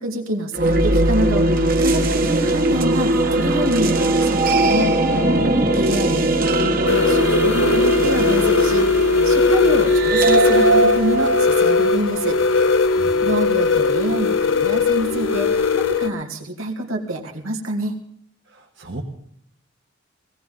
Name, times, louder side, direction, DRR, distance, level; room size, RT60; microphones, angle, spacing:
voice 1, 0.0-4.9 5.7-12.4 13.2-18.0, right 1 dB, 90° right, 2 dB, 2.7 m, -26 dB
sound 1, 0.5-12.7, right 2 dB, 45° right, 1.4 m, -20 dB
sound 2, 6.9-16.1, left 4 dB, 70° left, 0.8 m, -18 dB
voice 2, 18.5-19.0, right 2 dB, 60° right, -2 dB, 1.7 m, -36 dB
18.5 x 17.0 x 4.0 m, 0.70 s
head